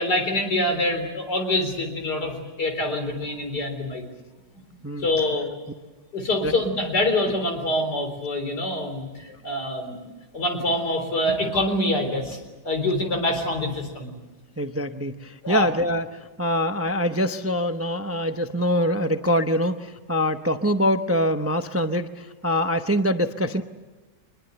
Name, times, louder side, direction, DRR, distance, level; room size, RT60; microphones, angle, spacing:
voice 1, 0.0-4.0 5.0-5.5 6.1-10.1 10.3-12.4 12.6-14.1 15.4-15.7, left 1 dB, 60° left, 5 dB, 4.4 m, -25 dB
voice 2, 14.6-23.6, equal, 20° right, 8 dB, 0.3 m, -24 dB
25.0 x 21.5 x 8.0 m, 1.2 s
omnidirectional pair, 2.0 m